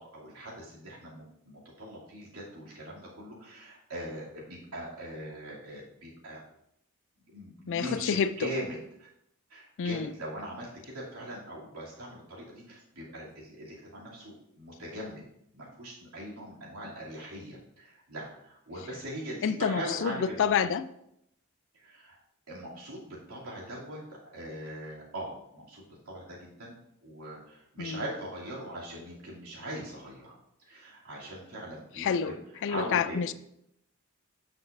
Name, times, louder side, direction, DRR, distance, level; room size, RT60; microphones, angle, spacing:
voice 1, 0.0-6.4 7.3-9.1 9.5-15.2 15.5-20.5 21.8-22.2 22.5-26.8 27.0-32.4 32.7-33.3, right 1 dB, 80° right, -6 dB, 2.7 m, -41 dB
voice 2, 7.7-8.5 9.8-10.1 19.4-20.9 27.8-28.0 32.0-32.3 32.6-33.3, left 7 dB, 60° left, 14 dB, 0.4 m, -28 dB
9.0 x 5.8 x 2.6 m, 0.78 s
head